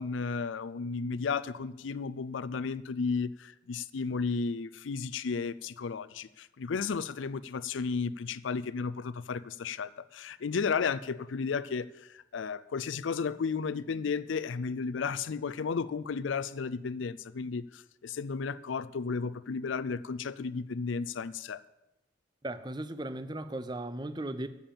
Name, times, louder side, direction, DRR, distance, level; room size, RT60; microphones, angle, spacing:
voice 1, 0.0-21.6, left 5 dB, 85° left, 0.5 m, -33 dB
voice 2, 22.4-24.5, right 1 dB, 20° right, 0.6 m, -36 dB
14.5 x 7.1 x 7.1 m
head